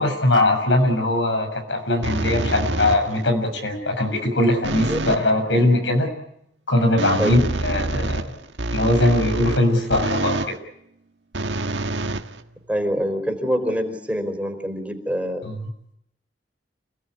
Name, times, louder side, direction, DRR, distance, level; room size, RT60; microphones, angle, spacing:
voice 1, 0.0-6.1 6.7-8.2 8.7-10.5 15.5-15.6, left 1 dB, 85° left, 5 dB, 7.0 m, -20 dB
sound 1, 2.0-3.3 4.6-5.3 7.0-10.6 11.3-12.8, right 2 dB, 80° right, 1.6 m, -26 dB
voice 2, 12.7-15.4, equal, 10° right, 5 dB, 4.2 m, -25 dB
28.5 x 18.0 x 9.8 m, 0.77 s
head